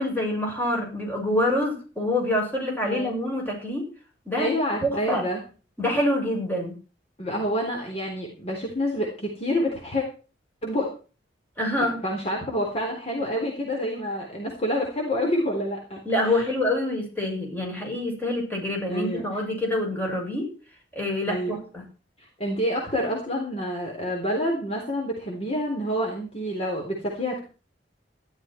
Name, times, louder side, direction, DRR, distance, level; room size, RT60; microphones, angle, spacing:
voice 1, 0.0-3.9 4.3-4.5 4.8-5.3 5.8-6.7 11.6-12.0 16.1-20.5 21.0-21.8, left 1 dB, 10° left, -1 dB, 7.1 m, -26 dB
voice 2, 2.9-3.2 4.4-5.4 7.2-10.0 10.6-10.9 11.8-16.5 18.9-19.2 21.3-21.7 22.4-27.4, equal, 35° left, 0 dB, 3.7 m, -28 dB
14.5 x 12.5 x 4.6 m, 0.36 s
head